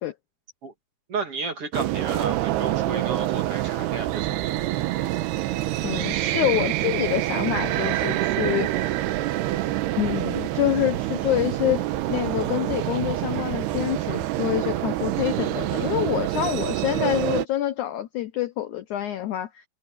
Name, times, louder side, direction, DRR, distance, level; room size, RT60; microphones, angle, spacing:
voice 1, 1.1-4.7 4.9-5.1, right 4 dB, 40° right, 2.6 m, -33 dB
sound 1, 1.7-17.5, right 15 dB, 80° right, 3.0 m, -26 dB
voice 2, 5.8-8.9 10.0-19.6, left 13 dB, 80° left, 1.7 m, -27 dB
omnidirectional pair, 4.7 m